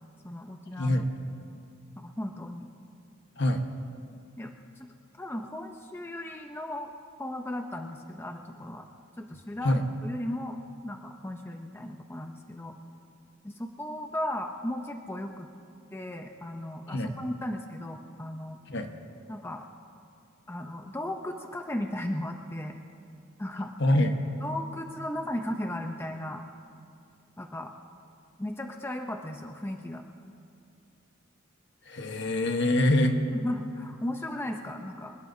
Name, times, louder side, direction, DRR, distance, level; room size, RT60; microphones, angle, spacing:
voice 1, 0.2-1.0 2.0-2.7 4.4-6.9 7.2-8.9 9.2-12.8 13.4-15.5 15.9-18.6 19.3-19.7 20.5-22.8 23.4-23.7 24.4-26.4 27.4-27.7 28.4-30.1 33.3-35.2, left 1 dB, 10° left, 4 dB, 0.6 m, -36 dB
voice 2, 0.8-1.1 3.4-3.6 9.6-9.8 16.9-17.1 18.7-18.9 23.8-24.2 31.8-33.2, left 1 dB, 55° left, 5 dB, 1.2 m, -24 dB
25.0 x 19.5 x 2.7 m, 2.5 s
head